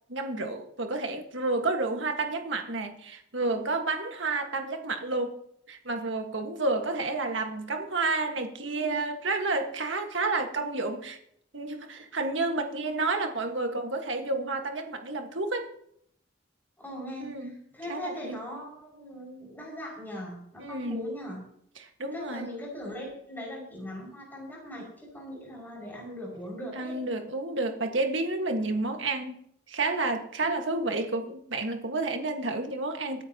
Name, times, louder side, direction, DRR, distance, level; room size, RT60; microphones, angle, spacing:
voice 1, 0.1-11.2 11.5-15.7 17.2-17.6 17.8-18.2 20.6-21.0 21.8-22.5 26.8-29.4 29.7-33.2, right 3 dB, 75° right, 5 dB, 1.7 m, -30 dB
voice 2, 16.8-21.4 22.0-27.0, equal, 10° left, -3 dB, 5.9 m, -40 dB
25.5 x 9.9 x 2.9 m, 0.71 s
head